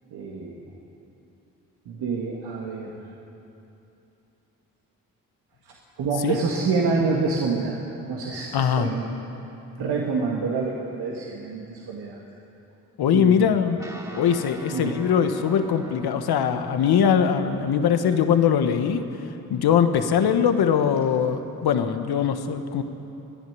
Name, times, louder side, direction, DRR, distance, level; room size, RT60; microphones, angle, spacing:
voice 1, 0.1-0.6 1.9-2.9 6.0-7.7 8.1-9.1 9.8-12.2 13.1-13.4 14.7-14.9, right 4 dB, 75° right, -2 dB, 2.1 m, -27 dB
voice 2, 8.5-8.9 13.0-13.8 14.1-19.0 19.5-22.8, left 7 dB, 70° left, 8 dB, 1.4 m, -21 dB
Guitar, 13.8-21.4, equal, 10° right, 3.3 m, -44 dB
25.0 x 10.5 x 9.7 m, 2.9 s
supercardioid pair, 45°, 39 cm